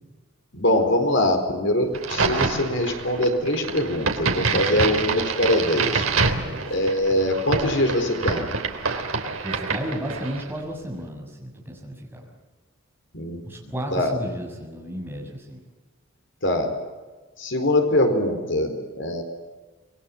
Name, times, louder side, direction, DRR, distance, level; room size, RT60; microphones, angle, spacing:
voice 1, 0.5-6.0 6.7-8.6 13.1-13.4 13.9-14.1 16.4-16.7 17.4-19.2, left 1 dB, 60° left, 5 dB, 4.3 m, -23 dB
Crack, 1.9-10.5, right 4 dB, 80° right, 3.3 m, -26 dB
voice 2, 4.5-5.0 6.3-6.7 9.4-12.3 13.4-15.6, equal, 10° right, 0 dB, 6.6 m, -33 dB
27.0 x 21.5 x 7.3 m, 1.3 s
head